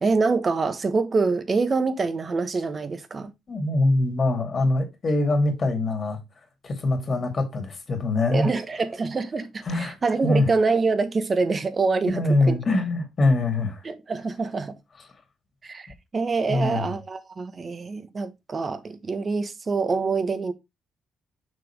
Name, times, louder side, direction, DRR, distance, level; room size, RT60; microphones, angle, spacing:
voice 1, 0.0-3.3 8.3-12.6 13.8-14.7 15.6-20.5, right 4 dB, 35° right, 1.3 m, -25 dB
voice 2, 3.5-6.2 6.6-8.5 9.6-10.0 10.2-10.5 12.1-13.8 16.5-16.9, left 2 dB, 40° left, 2.7 m, -23 dB
6.7 x 6.1 x 3.3 m
cardioid pair, 90°, 0 cm